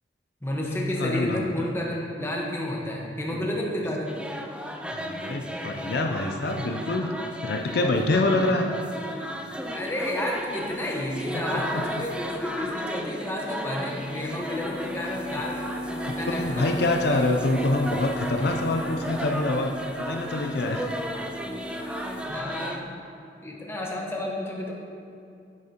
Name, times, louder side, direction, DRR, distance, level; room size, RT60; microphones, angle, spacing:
voice 1, 0.4-4.1 9.7-15.6 16.0-16.7 22.2-22.9 23.4-24.7, left 1 dB, 15° left, -2 dB, 1.1 m, -31 dB
voice 2, 1.0-1.7 3.3-3.5 4.9-7.1 7.4-8.7 11.3-11.8 16.0-20.9, left 2 dB, 60° left, 3 dB, 0.5 m, -26 dB
sound 1, 4.1-22.8, equal, 5° right, 0.3 m, -35 dB
sound 2, 9.1-22.3, right 1 dB, 90° left, 2.1 m, -38 dB
9.6 x 8.6 x 2.9 m, 2.5 s
head